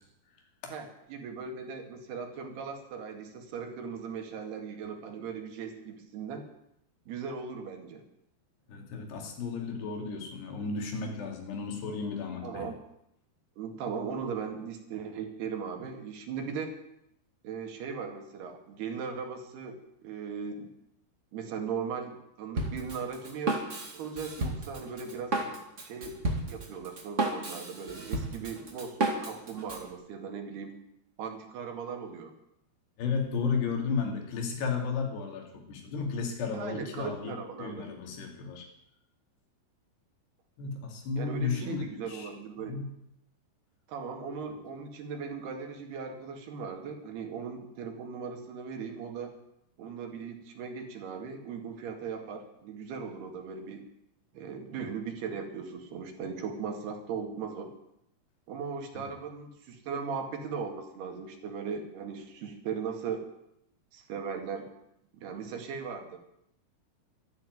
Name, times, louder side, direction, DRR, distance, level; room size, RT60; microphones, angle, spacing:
voice 1, 0.7-6.5 7.1-8.0 12.4-12.8 13.6-16.8 17.4-20.7 21.3-23.6 23.9-25.3 25.8-26.2 26.5-30.8 31.2-32.3 36.5-37.9 41.2-42.8 43.9-49.3 49.8-53.8 54.3-57.7 58.5-63.2 63.9-64.7 65.1-66.2, right 6 dB, 75° right, 4 dB, 4.1 m, -38 dB
voice 2, 8.7-12.7 33.0-38.7 40.6-42.3 42.6-43.0 58.9-59.0, left 5 dB, 80° left, 3 dB, 4.6 m, -33 dB
Drum kit, 22.6-29.9, right 2 dB, 25° right, 1.7 m, -33 dB
13.0 x 12.0 x 9.3 m, 0.78 s
omnidirectional pair, 4.7 m